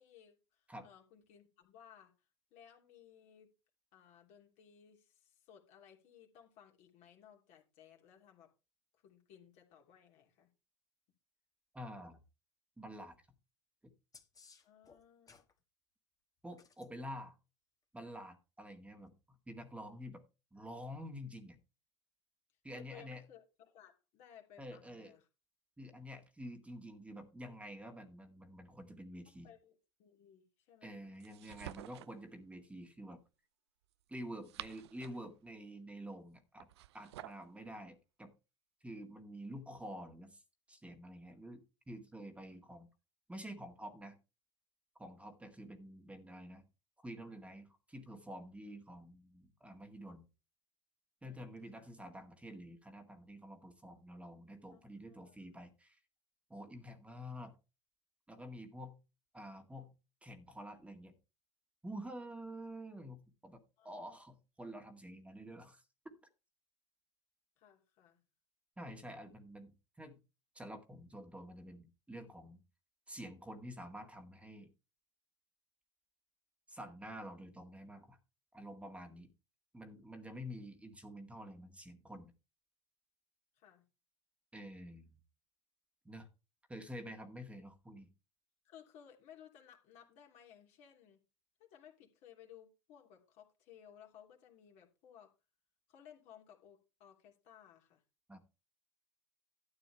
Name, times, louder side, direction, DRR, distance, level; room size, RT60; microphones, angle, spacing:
voice 1, 0.0-2.1 2.5-3.5 3.9-8.5 9.0-10.5 14.6-15.3 22.7-25.3 29.2-31.6 51.2-51.9 54.7-55.6 63.8-64.2 67.6-68.2 79.0-79.3 83.6-83.8 88.6-91.2 91.6-95.3 95.9-98.0, left 9 dB, 50° left, 2 dB, 3.0 m, -60 dB
voice 2, 11.7-12.2 12.8-13.2 13.8-13.9 16.4-17.4 17.9-20.2 20.5-21.6 22.6-23.2 24.6-25.1 25.8-29.5 30.8-33.2 34.1-36.7 36.9-38.3 38.8-40.4 40.7-42.9 43.3-44.2 45.0-46.7 47.0-50.3 51.2-56.0 56.5-57.5 58.3-59.0 59.3-59.9 60.2-61.1 61.8-63.6 63.8-66.1 68.8-70.2 70.5-72.6 73.1-74.7 76.7-78.2 78.5-79.3 79.7-82.3 84.5-85.1 86.1-86.3 86.7-88.1 98.3-98.4, equal, 10° right, 5 dB, 2.0 m, -49 dB
sound 1, 14.1-15.5 16.5-16.9 19.0-19.1, left 5 dB, 25° left, 1.9 m, -61 dB
sound 2, 31.2-32.2 34.2-35.3 36.6-37.5, right 14 dB, 65° right, 0.5 m, -50 dB
13.0 x 9.0 x 3.3 m, 0.29 s
figure-of-eight pair, 70°, 15 cm